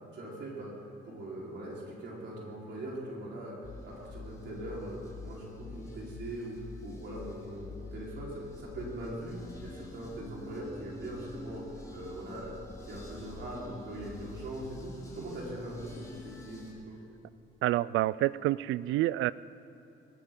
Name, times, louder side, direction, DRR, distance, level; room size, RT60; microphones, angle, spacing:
voice 1, 0.1-0.8 1.0-12.5 12.8-17.0, right 1 dB, 65° right, -4 dB, 4.4 m, -41 dB
sound 1, 3.6-16.7, left 3 dB, 15° left, 3.8 m, -47 dB
voice 2, 17.6-19.3, right 16 dB, 85° right, 19 dB, 0.4 m, -28 dB
20.0 x 16.0 x 3.9 m, 2.9 s
cardioid pair, 90°, 20 cm